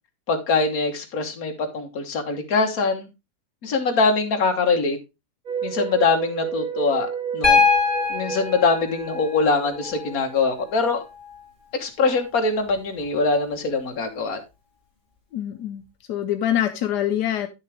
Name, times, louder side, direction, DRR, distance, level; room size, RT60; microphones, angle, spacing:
voice 1, 0.3-3.1 3.6-5.0 5.6-7.6 8.1-11.0 11.7-14.4, left 4 dB, 65° left, 5 dB, 1.8 m, -23 dB
sound 1, 5.5-10.6, right 7 dB, 65° right, 1.5 m, -32 dB
Piano, 7.4-11.4 13.0-13.1, left 5 dB, 30° left, 2.9 m, -24 dB
voice 2, 15.3-15.8 16.1-17.5, left 11 dB, 85° left, 8 dB, 1.3 m, -24 dB
9.6 x 6.5 x 3.4 m, 0.24 s
omnidirectional pair, 1.7 m